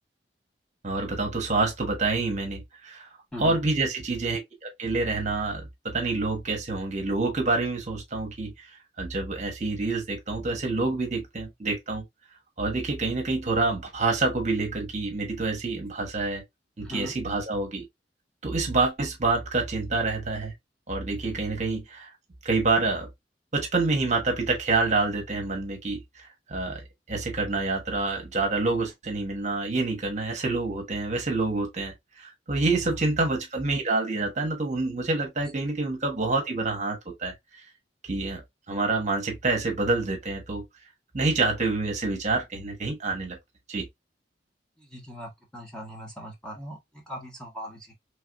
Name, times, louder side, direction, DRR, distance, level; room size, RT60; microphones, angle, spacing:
voice 1, 0.8-3.1 3.4-8.7 9.0-12.0 12.6-16.4 16.8-17.8 18.4-20.5 20.9-22.1 22.4-23.1 23.5-26.8 27.1-37.6 38.0-38.4 38.7-40.6 41.1-43.4 43.7-43.8, right 3 dB, 40° right, 1.2 m, -27 dB
voice 2, 3.3-3.7 16.8-17.1 32.8-33.0 44.8-47.9, equal, 5° left, 1.5 m, -40 dB
4.7 x 3.3 x 2.2 m
head